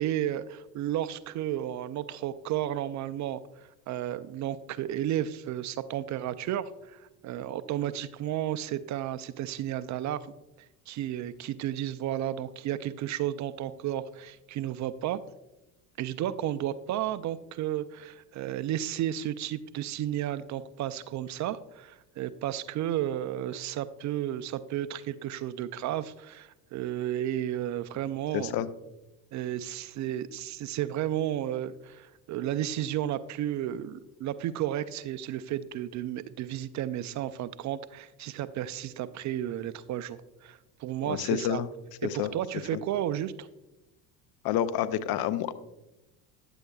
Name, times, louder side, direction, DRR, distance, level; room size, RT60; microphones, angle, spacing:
voice 1, 0.0-10.3 10.9-15.2 16.0-28.5 29.3-41.6 42.0-43.5, right 12 dB, 45° right, 14 dB, 0.4 m, -33 dB
voice 2, 28.3-28.7 41.1-41.7 42.0-42.3 42.7-42.8 44.4-45.5, left 11 dB, 60° left, 14 dB, 0.6 m, -28 dB
9.8 x 8.0 x 2.3 m, 0.98 s
supercardioid pair, 85°, 43 cm